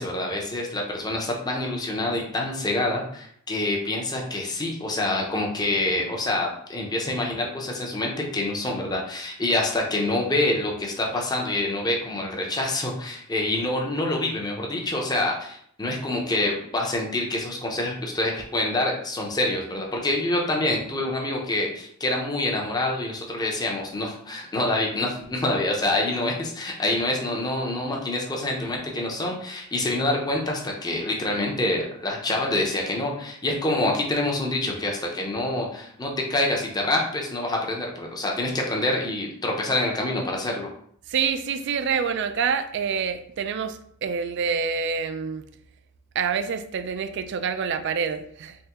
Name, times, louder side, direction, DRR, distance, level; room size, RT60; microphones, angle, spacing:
voice 1, 0.0-40.7, left 2 dB, 20° left, 0 dB, 0.6 m, -26 dB
voice 2, 41.1-45.4 46.2-48.6, right 6 dB, 55° right, 10 dB, 0.3 m, -27 dB
3.5 x 3.2 x 3.0 m, 0.67 s
head